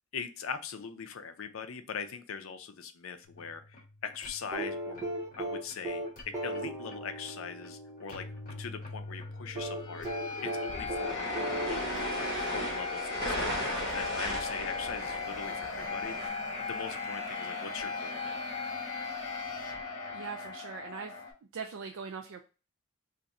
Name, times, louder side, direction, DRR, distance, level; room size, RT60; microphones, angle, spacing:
voice 1, 0.1-5.1 5.3-11.3 11.6-18.4, left 6 dB, 75° left, 8 dB, 0.4 m, -42 dB
sound 1, 3.2-21.3, left 4 dB, 40° left, 1.0 m, -39 dB
sound 2, 4.5-8.6 9.6-13.1 14.6-14.7, right 1 dB, 15° right, 0.5 m, -38 dB
sound 3, 10.7-16.3, equal, 50° right, 1.2 m, -36 dB
voice 2, 20.1-21.2 21.5-22.4, right 5 dB, 70° right, 4 dB, 0.3 m, -41 dB
2.5 x 2.5 x 4.1 m, 0.33 s
head